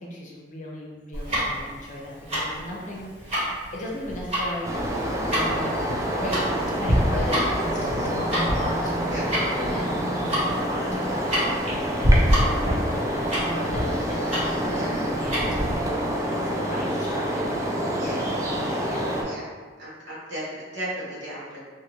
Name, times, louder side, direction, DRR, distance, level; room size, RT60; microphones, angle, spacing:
voice 1, 0.0-3.4 3.7-4.7 5.3-6.4 6.8-9.1 9.6-15.9 16.3-18.4 18.8-19.2, left 1 dB, 45° left, -3 dB, 0.6 m, -36 dB
Tick-tock, 1.1-15.8, equal, 35° right, 1.1 m, -26 dB
sound 1, 4.6-19.2, equal, 15° right, 0.4 m, -27 dB
voice 2, 19.8-21.6, right 1 dB, 80° right, -8 dB, 1.1 m, -35 dB
2.6 x 2.5 x 3.0 m, 1.5 s
head